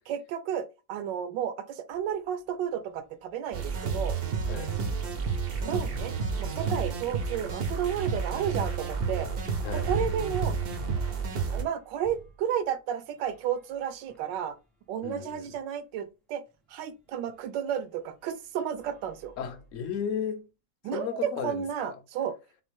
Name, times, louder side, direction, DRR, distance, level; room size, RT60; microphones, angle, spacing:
voice 1, 0.1-4.2 5.6-9.3 9.7-10.6 11.5-14.6 14.9-16.4 16.7-19.3 20.8-22.4, right 9 dB, 80° right, 1.2 m, -32 dB
sound 1, 1.9-2.1 2.5-2.6 2.9-12.4 13.1-14.5 15.1-15.2 15.5-15.6 17.3-17.4 18.0-18.2 18.7-20.0, equal, ahead, 0.5 m, -43 dB
sound 2, 3.5-11.6, right 5 dB, 60° right, 0.6 m, -31 dB
voice 2, 15.0-15.5 19.4-20.5 20.9-22.0, left 8 dB, 60° left, 0.9 m, -35 dB
4.0 x 3.3 x 3.5 m
omnidirectional pair, 2.0 m